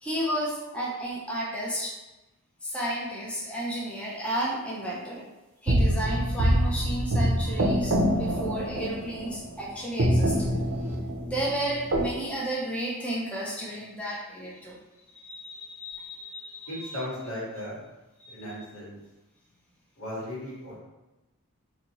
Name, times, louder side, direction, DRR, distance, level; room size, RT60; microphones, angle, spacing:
voice 1, 0.0-1.9 2.6-5.2 5.6-10.5 11.3-14.8 15.1-17.0 18.2-18.6, right 1 dB, 5° left, -5 dB, 0.5 m, -33 dB
sound 1, 5.7-9.6 10.0-12.1, equal, 55° right, 0.5 m, -25 dB
voice 2, 16.7-17.8 18.3-19.0 20.0-20.8, left 1 dB, 80° left, -7 dB, 1.5 m, -36 dB
4.2 x 2.6 x 2.9 m, 1.0 s
head